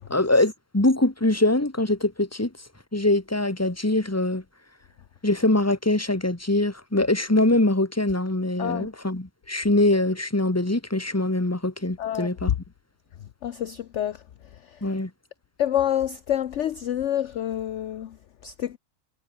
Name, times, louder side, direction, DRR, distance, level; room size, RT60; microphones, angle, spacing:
voice 1, 0.1-2.5 2.9-4.4 5.2-12.5 14.8-15.1, left 2 dB, 10° left, 2.0 m, -23 dB
voice 2, 8.6-8.9 12.0-12.5 13.4-14.2 14.7-14.8 15.6-18.2 18.4-18.8, left 10 dB, 60° left, 1.0 m, -27 dB
omnidirectional pair, 1.6 m